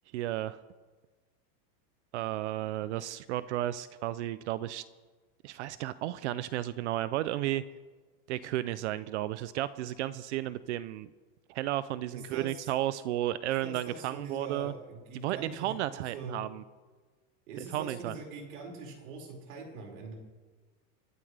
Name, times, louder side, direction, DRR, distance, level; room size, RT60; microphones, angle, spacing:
voice 1, 0.1-0.6 2.1-4.8 5.4-7.6 8.3-11.1 11.5-14.7 15.1-16.6 17.6-18.1, right 14 dB, 55° right, 15 dB, 0.5 m, -33 dB
voice 2, 12.1-12.7 13.6-16.4 17.5-20.1, right 4 dB, 80° right, 0 dB, 5.5 m, -43 dB
26.5 x 12.5 x 3.4 m, 1.3 s
supercardioid pair, 175°, 43 cm